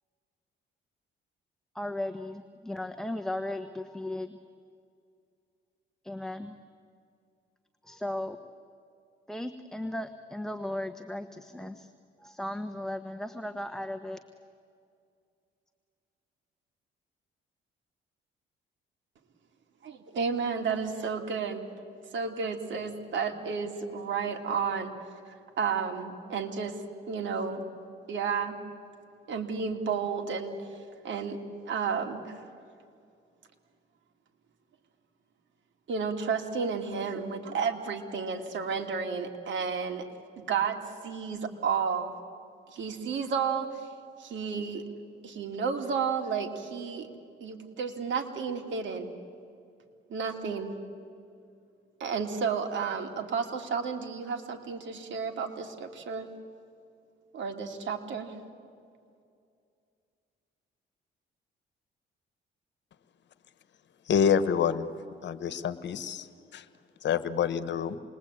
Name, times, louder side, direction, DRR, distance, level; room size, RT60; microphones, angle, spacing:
voice 1, 1.7-4.4 6.0-6.5 7.8-8.4 9.3-11.9 12.2-14.2, left 1 dB, ahead, 7 dB, 1.2 m, -36 dB
voice 2, 19.8-21.7 22.1-24.9 25.6-26.7 27.1-27.6 28.1-28.6 29.3-30.6 31.0-31.4 31.7-32.4 35.9-40.0 40.4-42.1 42.7-43.8 44.2-44.8 45.2-47.1 47.4-49.1 50.1-50.7 52.0-56.3 57.3-58.4, right 6 dB, 70° right, 5 dB, 2.7 m, -32 dB
voice 3, 64.1-64.9 65.2-66.3 66.5-66.6 67.0-68.0, left 7 dB, 65° left, 13 dB, 1.3 m, -27 dB
27.5 x 21.5 x 8.7 m, 2.4 s
cardioid pair, 90°, 20 cm